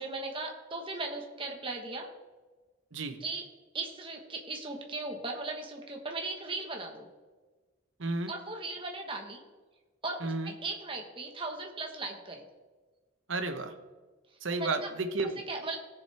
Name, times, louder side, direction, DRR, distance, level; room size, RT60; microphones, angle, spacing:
voice 1, 0.0-2.1 3.2-3.4 3.7-7.1 8.3-9.4 10.0-12.5 14.6-14.7 15.5-15.8, right 3 dB, 25° right, 2 dB, 1.4 m, -37 dB
voice 2, 8.0-8.3 10.2-10.5 13.3-13.7 14.4-15.4, right 3 dB, 70° right, 7 dB, 1.1 m, -32 dB
17.0 x 7.2 x 3.5 m, 1.3 s
head